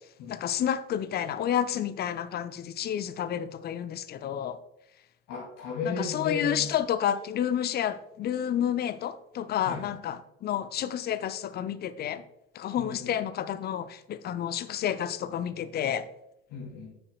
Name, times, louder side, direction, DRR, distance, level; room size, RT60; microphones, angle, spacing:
voice 1, 0.3-4.6 5.9-12.2 12.5-16.0, left 10 dB, 30° left, 0.5 m, -30 dB
voice 2, 5.3-6.7 9.7-9.9 12.8-13.1 16.5-16.9, left 4 dB, 50° left, 2.8 m, -35 dB
9.7 x 7.8 x 2.3 m
figure-of-eight pair, 70°, 35 cm